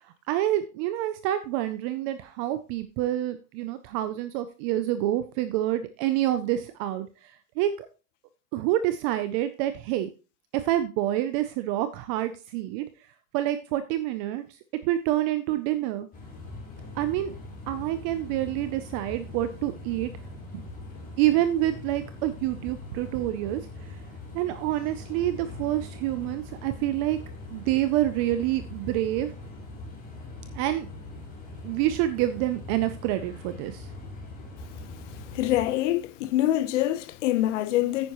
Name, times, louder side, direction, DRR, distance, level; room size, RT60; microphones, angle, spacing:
voice 1, 0.3-7.1 7.6-7.9 8.5-10.1 10.5-12.9 13.3-14.4 14.8-16.1 17.0-17.3 17.7-20.1 20.5-20.6 21.2-23.6 24.3-27.2 27.5-29.3 30.6-30.9 31.6-33.8, right 13 dB, 25° right, 0.4 m, -27 dB
sound 1, 16.1-35.7, left 2 dB, 20° left, 3.2 m, -42 dB
voice 2, 35.3-38.1, left 14 dB, 60° left, 0.8 m, -25 dB
9.9 x 9.4 x 3.0 m
supercardioid pair, 150°, 41 cm